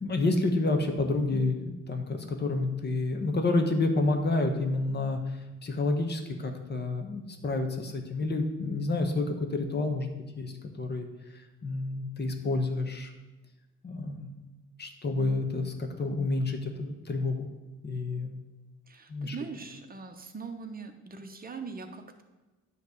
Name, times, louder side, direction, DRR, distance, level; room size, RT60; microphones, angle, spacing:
voice 1, 0.0-5.2 5.6-10.1 10.4-11.1 11.6-13.1 13.8-14.3 14.8-17.5 17.8-18.3 19.1-19.3, left 2 dB, 35° left, 5 dB, 1.2 m, -29 dB
voice 2, 18.9-22.2, right 5 dB, 30° right, 5 dB, 1.0 m, -41 dB
9.7 x 3.3 x 6.6 m, 1.1 s
cardioid pair, 90°, 30 cm